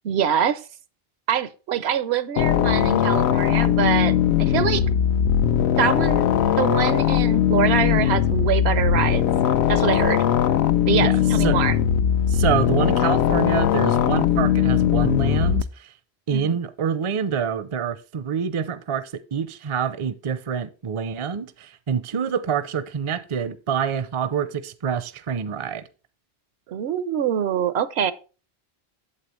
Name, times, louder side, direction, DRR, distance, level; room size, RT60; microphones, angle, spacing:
voice 1, 0.0-0.6 1.3-4.1 4.4-4.8 5.8-6.2 6.6-9.3 9.7-10.2 10.9-11.8 16.3-16.6 26.7-28.1, right 8 dB, 80° right, 0.9 m, -24 dB
sound 1, 2.4-15.6, left 9 dB, 85° left, 0.9 m, -20 dB
voice 2, 11.0-11.6 12.3-15.9 16.3-25.9, right 7 dB, 40° right, 0.5 m, -26 dB
8.5 x 7.4 x 3.0 m
omnidirectional pair, 1.1 m